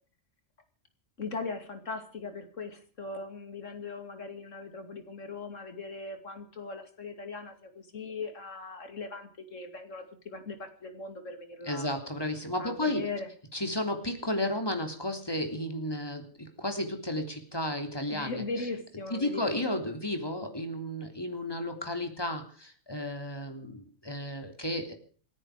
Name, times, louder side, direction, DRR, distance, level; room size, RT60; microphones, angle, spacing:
voice 1, 1.2-11.9 12.6-13.3 18.1-19.8, left 3 dB, 80° left, 7 dB, 2.9 m, -39 dB
voice 2, 11.7-13.0 13.5-18.4 19.1-24.9, left 1 dB, 20° left, 5 dB, 3.2 m, -33 dB
27.5 x 10.0 x 4.9 m, 0.43 s
omnidirectional pair, 1.3 m